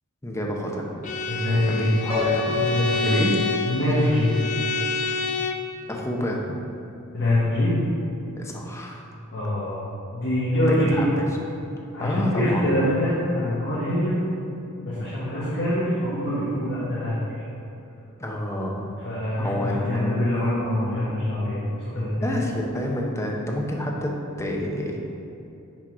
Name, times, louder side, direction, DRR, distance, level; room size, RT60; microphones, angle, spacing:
voice 1, 0.2-0.9 1.7-2.6 3.1-3.4 5.9-6.4 8.4-9.1 10.7-11.1 12.0-12.7 18.2-18.8 19.4-20.2 22.2-25.0, equal, 15° left, -1 dB, 0.7 m, -28 dB
Bowed string instrument, 1.0-5.7, left 3 dB, 35° left, 0.4 m, -28 dB
voice 2, 1.3-2.0 2.5-3.2 3.7-4.4 7.1-7.8 9.3-9.8 10.1-11.1 11.9-14.2 14.8-17.3 19.0-22.4, left 1 dB, 50° left, -10 dB, 1.3 m, -24 dB
Piano, 2.1-4.1, left 3 dB, 30° right, 1.2 m, -29 dB
6.1 x 4.5 x 4.6 m, 2.8 s
head